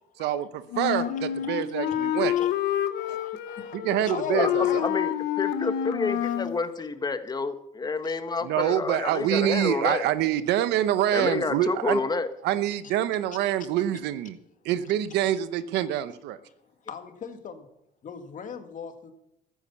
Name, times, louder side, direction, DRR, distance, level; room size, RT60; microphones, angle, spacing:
voice 1, 0.2-2.4 3.1-3.2 3.7-4.8 8.4-12.0 12.4-14.3 14.6-16.4, right 12 dB, 85° right, 14 dB, 0.9 m, -26 dB
Wind instrument woodwind instrument, 0.7-6.6, left 11 dB, 85° left, 0.9 m, -28 dB
voice 2, 2.9-3.8 4.1-4.9 6.2-6.3 8.0-8.2 12.8-12.9 16.9-17.7 18.0-19.1, left 6 dB, 50° left, 8 dB, 2.0 m, -38 dB
voice 3, 4.4-10.0 11.1-12.3, left 4 dB, 25° left, 10 dB, 1.4 m, -29 dB
14.0 x 9.9 x 7.1 m, 0.80 s
cardioid pair, 110°, 17 cm